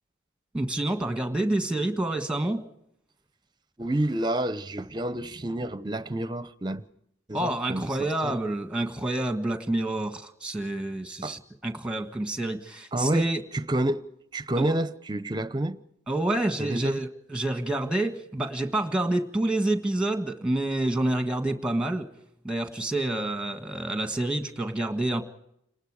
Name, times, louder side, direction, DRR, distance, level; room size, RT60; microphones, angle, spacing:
voice 1, 0.5-2.6 7.3-13.4 14.5-14.7 16.1-22.1 22.4-25.2, right 1 dB, 5° right, 1.6 m, -28 dB
voice 2, 3.8-6.8 7.3-8.4 11.2-11.4 12.9-14.0 14.3-15.8 16.6-17.0, right 1 dB, 20° right, 0.9 m, -29 dB
30.0 x 20.0 x 5.0 m
head